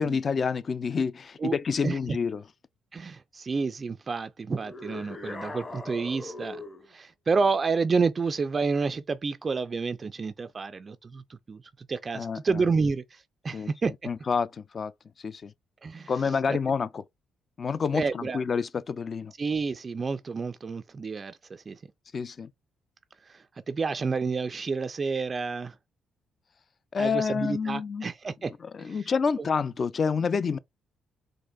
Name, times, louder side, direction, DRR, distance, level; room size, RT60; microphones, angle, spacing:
voice 1, 0.0-2.4 12.1-12.6 13.5-13.7 14.0-14.9 15.2-15.5 16.1-17.0 17.6-19.3 22.1-22.5 26.9-28.1 28.7-30.6, left 5 dB, 45° left, 0.3 m, -28 dB
voice 2, 1.8-2.2 2.9-6.6 6.9-13.9 15.8-16.6 17.9-18.4 19.4-21.8 23.3-25.8 27.0-28.5 28.8-29.1 29.4-29.5, right 4 dB, 35° right, 0.3 m, -30 dB
sound 1, 4.6-6.9, left 2 dB, 25° left, 0.7 m, -40 dB
4.3 x 2.5 x 2.3 m
cardioid pair, 90°, 0 cm